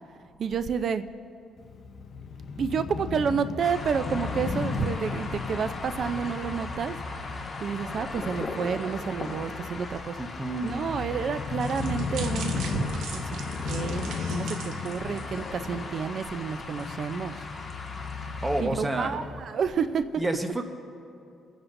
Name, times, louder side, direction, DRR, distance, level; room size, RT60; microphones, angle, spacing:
voice 1, 0.4-1.0 2.6-7.0 7.6-10.2 10.6-12.8 13.1-17.4 18.6-20.0, right 6 dB, 55° right, 12 dB, 0.6 m, -30 dB
Crow / Motorcycle, 1.6-19.4, left 5 dB, 60° left, 0.8 m, -36 dB
sound 1, 3.6-18.6, left 3 dB, 25° left, 1.8 m, -39 dB
voice 2, 10.2-10.9 18.4-19.2 20.2-20.7, right 1 dB, 15° right, 5 dB, 1.2 m, -29 dB
sound 2, 11.6-15.8 16.2-16.3 16.8-16.9, right 3 dB, 80° right, 1.2 m, -39 dB
26.5 x 10.0 x 2.7 m, 2.5 s
cardioid pair, 90°, 0 cm